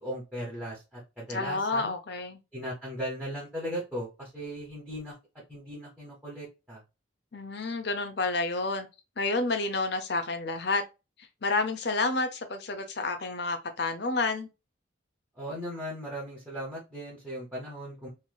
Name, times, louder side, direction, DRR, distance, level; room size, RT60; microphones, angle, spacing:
voice 1, 0.0-1.9 2.5-5.1 5.5-6.8 15.4-18.1, equal, 10° right, 1.1 m, -37 dB
voice 2, 1.3-2.4 7.3-8.9 9.2-10.8 11.4-14.5, left 3 dB, 55° left, 0.7 m, -29 dB
3.2 x 2.8 x 2.2 m
head